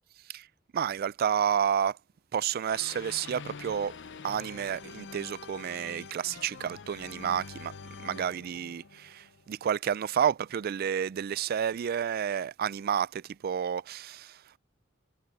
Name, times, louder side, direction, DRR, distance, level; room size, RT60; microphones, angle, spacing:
voice 1, 0.7-2.0 2.3-4.0 4.2-14.6, right 8 dB, 50° right, 0.3 m, -30 dB
sound 1, 2.7-9.7, left 5 dB, 65° left, 0.7 m, -46 dB
head